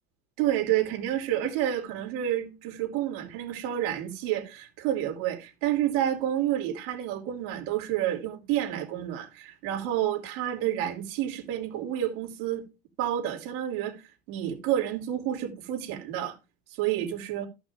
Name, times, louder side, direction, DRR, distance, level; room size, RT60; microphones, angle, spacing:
voice 1, 0.4-12.7 13.0-14.0 14.3-16.4 16.7-17.5, right 11 dB, 75° right, 3.1 m, -29 dB
14.0 x 5.8 x 3.7 m
cardioid pair, 180°, 30 cm